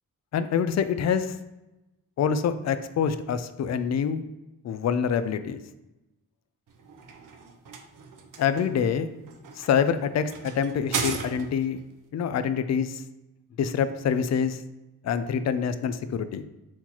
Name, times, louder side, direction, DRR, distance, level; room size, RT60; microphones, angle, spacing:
voice 1, 0.3-1.3 2.2-4.2 4.6-5.6 8.4-9.1 9.6-11.8 12.1-13.0 13.6-14.6 15.0-16.5, left 7 dB, 50° left, 11 dB, 0.4 m, -26 dB
sound 1, 6.7-11.8, right 5 dB, 60° right, 0.7 m, -36 dB
4.3 x 4.0 x 2.9 m, 0.99 s
cardioid pair, 65°, 36 cm